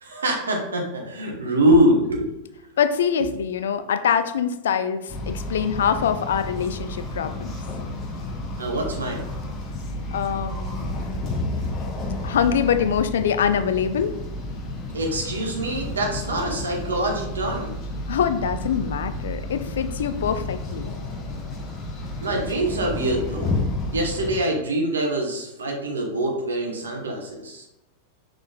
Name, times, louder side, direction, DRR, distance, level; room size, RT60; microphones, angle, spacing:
voice 1, 0.0-2.3 8.6-9.2 14.9-17.8 22.2-23.5 23.8-27.6, right 1 dB, 70° right, 1 dB, 1.0 m, -24 dB
voice 2, 2.8-7.5 10.1-11.3 12.2-14.1 18.1-20.9, left 7 dB, 60° left, 10 dB, 0.3 m, -24 dB
sound 1, 5.1-24.4, left 1 dB, 30° left, 0.8 m, -31 dB
6.1 x 3.8 x 2.3 m, 0.90 s
figure-of-eight pair, 90°, 0 cm